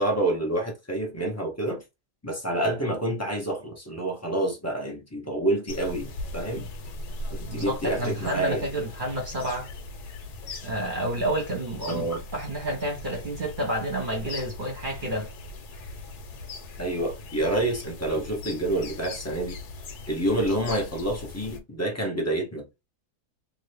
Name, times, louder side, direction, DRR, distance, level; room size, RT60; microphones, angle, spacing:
voice 1, 0.0-1.8 2.2-6.7 7.5-8.6 11.9-12.2 16.8-19.6 20.1-22.7, right 1 dB, 15° left, 0.5 m, -28 dB
sound 1, 5.7-21.6, left 2 dB, 75° left, 1.3 m, -40 dB
voice 2, 7.5-9.7 10.6-15.3, right 1 dB, 35° right, 1.0 m, -30 dB
2.8 x 2.6 x 3.3 m
omnidirectional pair, 1.7 m